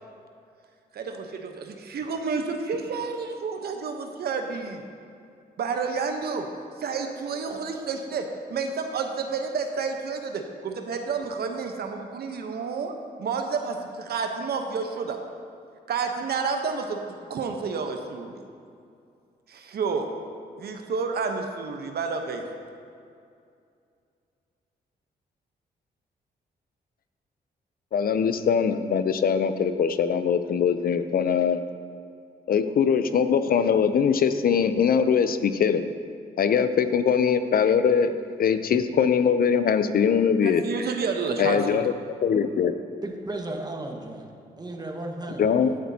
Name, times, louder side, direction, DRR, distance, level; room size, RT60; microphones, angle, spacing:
voice 1, 0.9-4.8 5.6-6.5 6.8-12.9 13.2-15.2 15.9-18.4 19.5-20.1 20.6-22.4 40.4-41.8, right 5 dB, 70° right, 4 dB, 1.0 m, -30 dB
voice 2, 27.9-31.6 32.5-35.8 36.4-38.1 38.4-40.6 41.4-41.9 42.2-42.7 45.4-45.7, left 7 dB, 60° left, 11 dB, 0.6 m, -22 dB
voice 3, 43.0-44.3 44.6-45.8, right 2 dB, 25° right, 2 dB, 1.5 m, -35 dB
15.0 x 8.8 x 2.8 m, 2.4 s
supercardioid pair, 60°, 17 cm